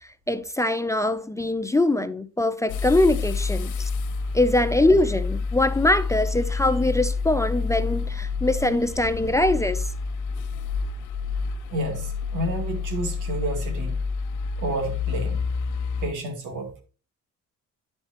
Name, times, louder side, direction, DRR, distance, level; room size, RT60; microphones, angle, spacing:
voice 1, 0.0-3.9 4.3-9.9, left 1 dB, 10° left, 0.5 m, -23 dB
sound 1, 2.7-16.1, left 4 dB, 85° left, 0.8 m, -28 dB
voice 2, 4.0-4.4 11.7-14.0 14.6-15.4 16.0-16.8, right 1 dB, 90° right, 2.1 m, -30 dB
11.5 x 4.4 x 3.0 m
cardioid pair, 90°, 30 cm